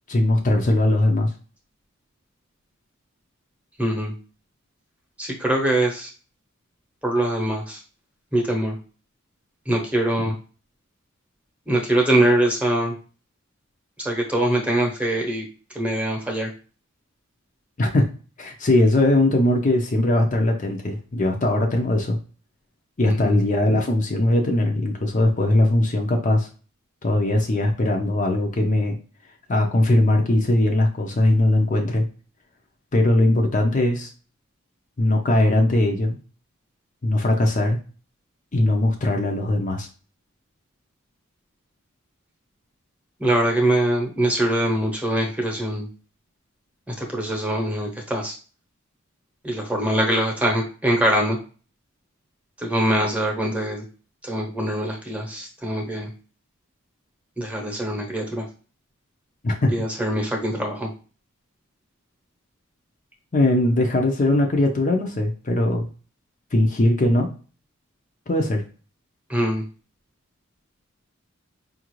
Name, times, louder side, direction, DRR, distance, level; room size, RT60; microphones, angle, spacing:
voice 1, 0.1-1.3 17.8-18.1 18.4-22.2 23.0-26.5 27.0-29.0 29.5-32.1 32.9-34.1 35.0-36.2 37.0-37.8 38.5-39.9 59.4-59.7 63.3-65.9 66.5-67.3 68.3-68.6, left 1 dB, 35° left, 2 dB, 0.6 m, -20 dB
voice 2, 3.8-4.1 5.2-6.1 7.0-7.8 8.3-8.7 9.7-10.4 11.7-12.9 14.0-15.4 15.7-16.5 23.0-23.4 43.2-45.9 46.9-48.3 49.4-51.4 52.6-53.8 54.2-56.1 57.4-58.4 59.7-60.9 69.3-69.6, right 1 dB, 5° right, 0 dB, 0.9 m, -23 dB
5.1 x 2.5 x 3.0 m, 0.37 s
head